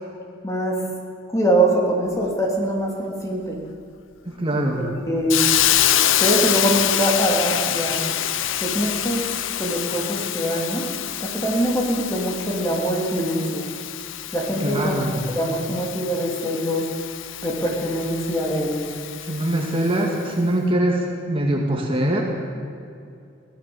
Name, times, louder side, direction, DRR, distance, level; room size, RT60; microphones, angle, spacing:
voice 1, 0.4-0.9 1.3-3.6 4.8-5.4 6.2-8.0 8.6-9.2 9.6-10.9 11.2-13.7 14.3-15.0 15.3-16.9 17.4-18.9, right 1 dB, 15° left, -1 dB, 3.1 m, -23 dB
voice 2, 4.3-4.9 14.6-15.2 19.2-22.2, right 1 dB, 25° right, 0 dB, 2.2 m, -23 dB
Hiss, 5.3-20.1, left 11 dB, 60° left, 0.7 m, -26 dB
23.5 x 17.0 x 7.1 m, 2.5 s
head